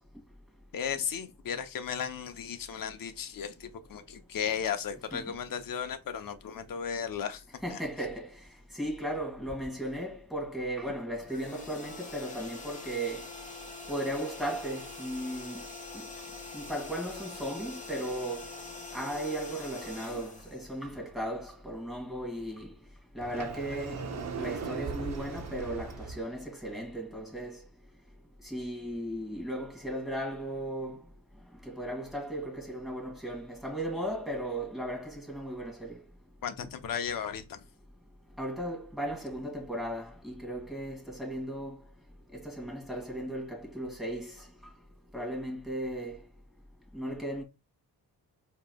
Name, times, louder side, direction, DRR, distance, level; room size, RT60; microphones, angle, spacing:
voice 1, 0.7-7.4 7.7-7.8 36.4-37.6, left 7 dB, 60° left, 0.8 m, -35 dB
voice 2, 7.6-8.3 8.7-13.3 13.9-15.6 15.9-16.1 16.5-18.5 18.9-22.7 23.1-24.0 24.4-27.6 28.4-31.0 31.7-36.0 38.4-41.8 42.3-44.4 45.1-46.2 46.9-47.4, right 1 dB, ahead, 2.1 m, -36 dB
sound 1, 11.2-21.2, left 3 dB, 20° left, 1.1 m, -44 dB
Sliding door, 23.2-26.2, right 4 dB, 45° right, 0.7 m, -38 dB
4.7 x 3.1 x 2.3 m
cardioid pair, 80°, 39 cm